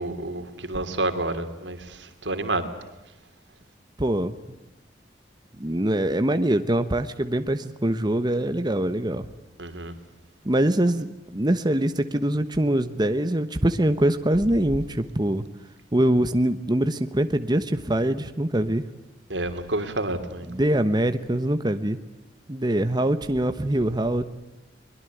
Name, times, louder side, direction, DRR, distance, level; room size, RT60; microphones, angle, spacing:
voice 1, 0.0-2.0 2.2-2.6 9.6-9.9 19.3-20.5, right 2 dB, 90° right, 9 dB, 3.0 m, -29 dB
voice 2, 4.0-4.3 5.6-9.3 10.4-15.4 15.9-18.8 20.5-22.0 22.5-24.2, right 1 dB, 25° right, 9 dB, 1.1 m, -23 dB
23.0 x 22.0 x 9.3 m, 1.0 s
head